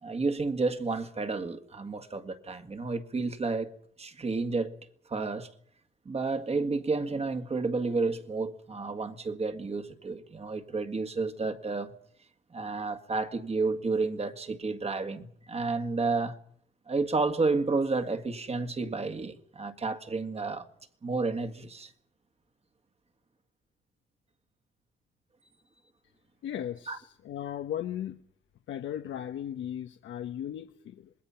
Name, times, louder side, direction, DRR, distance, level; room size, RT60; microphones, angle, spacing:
voice 1, 0.0-4.8 5.1-5.5 6.1-11.9 12.5-16.4 16.9-20.7 21.0-21.9 26.9-27.0, right 3 dB, 30° right, 1.9 m, -31 dB
voice 2, 26.4-28.2 28.7-31.1, left 10 dB, 75° left, 1.1 m, -36 dB
26.5 x 20.0 x 5.8 m
cardioid pair, 90°, 20 cm